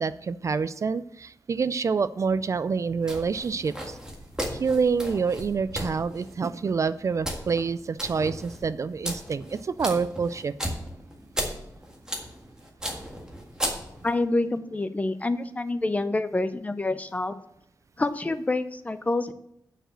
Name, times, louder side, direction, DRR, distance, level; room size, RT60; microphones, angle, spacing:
voice 1, 0.0-4.0 4.5-10.5, right 5 dB, 45° right, 14 dB, 0.3 m, -27 dB
sound 1, 3.0-14.2, equal, 10° right, 1.7 m, -36 dB
voice 2, 14.0-17.4 18.0-19.3, left 2 dB, 20° left, 11 dB, 0.6 m, -27 dB
9.0 x 5.0 x 7.6 m, 0.74 s
wide cardioid pair, 150°, 7 cm